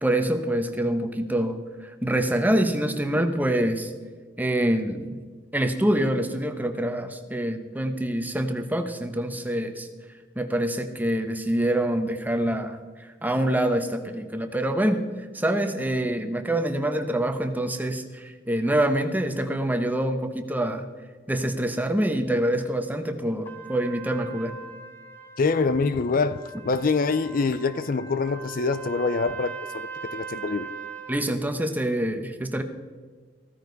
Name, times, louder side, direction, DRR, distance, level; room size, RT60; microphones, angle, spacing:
voice 1, 0.0-3.9 4.4-5.2 5.5-9.9 10.3-12.8 13.2-15.0 15.3-20.9 21.3-24.5 31.1-32.6, right 1 dB, 10° right, 1.1 m, -25 dB
Trumpet, 23.4-31.3, right 6 dB, 10° left, 1.8 m, -40 dB
voice 2, 25.4-26.4 26.6-30.7, left 4 dB, 50° left, 0.5 m, -25 dB
15.5 x 14.0 x 4.1 m
head